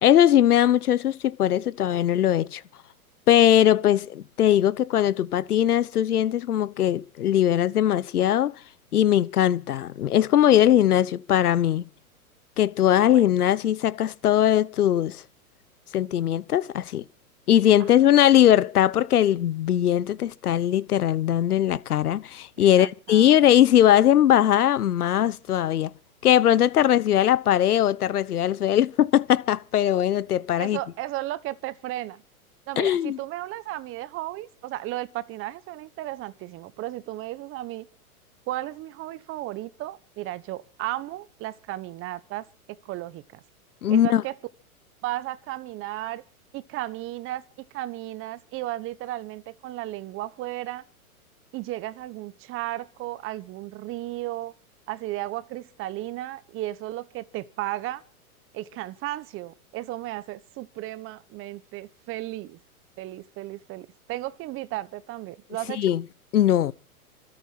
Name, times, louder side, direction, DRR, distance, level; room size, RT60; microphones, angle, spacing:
voice 1, 0.0-2.6 3.3-8.5 8.9-11.8 12.6-15.2 15.9-17.0 17.5-25.9 26.2-30.8 32.8-33.2 43.8-44.2 65.7-66.0 66.3-66.7, left 11 dB, 85° left, 1.0 m, -20 dB
voice 2, 22.6-23.4 30.6-32.2 32.7-37.9 38.5-43.4 43.9-44.4 45.0-46.2 46.5-50.8 51.5-54.5 54.9-58.0 58.5-62.6 63.0-65.9, right 16 dB, 30° right, 1.2 m, -34 dB
25.5 x 9.1 x 5.8 m
hypercardioid pair, 130°, 44 cm